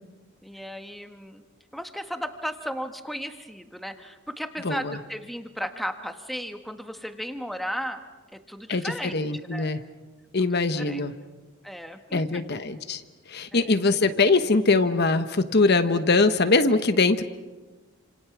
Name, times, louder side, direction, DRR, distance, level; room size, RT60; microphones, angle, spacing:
voice 1, 0.4-1.4 1.7-8.0 8.3-9.2 9.5-9.7 10.4-10.5 10.8-11.0 11.6-12.4 13.5-13.8, equal, ahead, 6 dB, 1.5 m, -35 dB
voice 2, 4.6-5.0 8.7-9.8 10.3-11.1 12.1-13.0 13.3-17.2, left 3 dB, 50° left, 10 dB, 1.1 m, -22 dB
29.0 x 27.0 x 6.1 m, 1.2 s
head